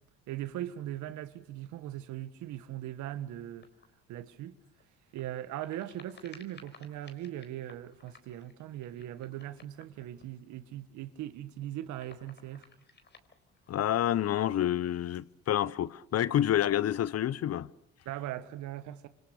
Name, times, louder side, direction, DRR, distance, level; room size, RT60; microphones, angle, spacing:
voice 1, 0.3-3.7 4.1-4.6 5.1-12.7 18.1-19.1, right 13 dB, 75° right, 1.7 m, -40 dB
sound 1, 3.6-4.0 4.6-10.6 11.1-11.2 11.4-14.1 15.1-15.6 16.2-17.1, left 4 dB, 35° left, 4.2 m, -59 dB
voice 2, 13.7-17.7, left 11 dB, 55° left, 0.9 m, -28 dB
27.5 x 25.5 x 6.7 m
supercardioid pair, 65°, 30 cm